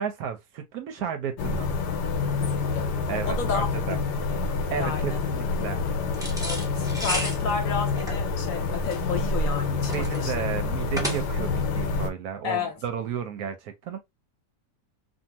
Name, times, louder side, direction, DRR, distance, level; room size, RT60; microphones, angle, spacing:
voice 1, 0.0-1.7 3.1-4.0 4.7-5.8 9.9-14.0, right 8 dB, 70° right, 1.0 m, -32 dB
sound 1, 1.4-12.1, left 4 dB, 80° left, 1.2 m, -27 dB
voice 2, 3.2-3.7 4.3-4.4 4.8-5.2 6.4-10.3 12.4-12.8, left 6 dB, 60° left, 1.0 m, -31 dB
sound 2, 6.1-11.6, equal, 5° right, 0.5 m, -34 dB
2.8 x 2.5 x 2.7 m
omnidirectional pair, 1.8 m